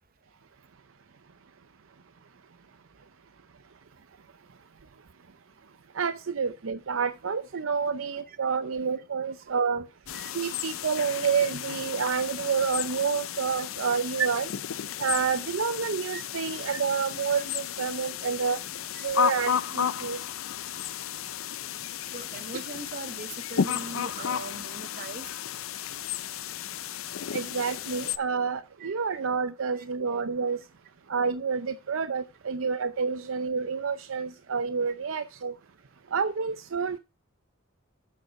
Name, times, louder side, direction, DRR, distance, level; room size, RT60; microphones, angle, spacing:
voice 1, 6.0-9.8 10.3-14.5 15.0-18.6 19.0-20.2 27.3-30.6 31.1-35.5 36.1-37.0, right 6 dB, 65° right, 0.6 m, -29 dB
sound 1, 10.1-28.2, left 8 dB, 70° left, 0.5 m, -33 dB
voice 2, 22.1-25.3 28.8-28.9 29.7-29.8 33.9-34.0, right 3 dB, 45° right, 1.0 m, -41 dB
8.2 x 6.6 x 5.8 m
head